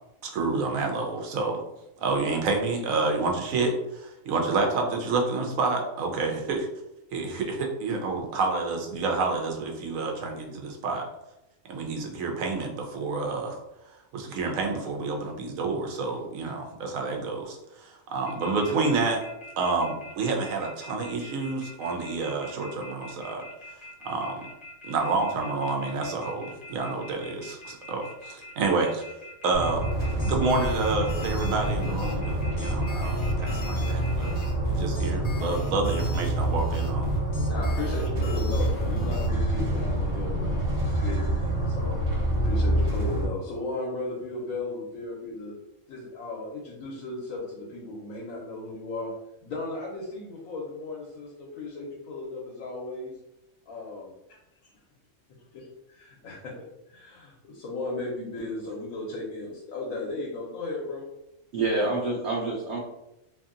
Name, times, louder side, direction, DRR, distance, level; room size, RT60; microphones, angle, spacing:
voice 1, 0.2-1.6 2.0-6.7 7.1-11.1 11.7-13.6 14.1-19.2 19.6-23.4 24.0-24.4 24.9-29.0 29.4-29.8 30.2-34.3 34.6-37.1, right 3 dB, 85° right, 2 dB, 1.0 m, -29 dB
sound 1, 18.3-34.5, left 1 dB, 45° left, 0.5 m, -44 dB
sound 2, 29.5-43.2, right 1 dB, 45° right, 1.1 m, -27 dB
sound 3, 29.9-39.3, left 1 dB, 65° left, 0.9 m, -40 dB
voice 2, 37.5-42.0 42.4-45.5 45.9-49.1 49.4-53.1 53.7-54.1 55.5-55.6 56.0-61.1, left 2 dB, 85° left, -3 dB, 1.1 m, -36 dB
voice 3, 61.5-62.8, right 2 dB, 65° right, -4 dB, 0.8 m, -27 dB
2.8 x 2.7 x 2.4 m, 0.88 s
omnidirectional pair, 1.4 m